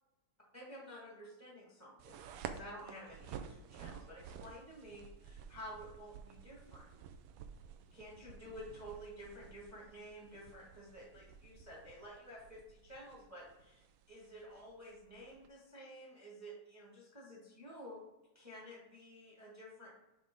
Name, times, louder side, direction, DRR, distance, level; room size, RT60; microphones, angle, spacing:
voice 1, 0.5-6.9 7.6-18.0 18.3-19.9, equal, 5° right, -4 dB, 1.6 m, -52 dB
sound 1, 2.0-15.5, right 7 dB, 80° right, 1.6 m, -52 dB
8.1 x 3.6 x 3.7 m, 0.96 s
omnidirectional pair, 3.3 m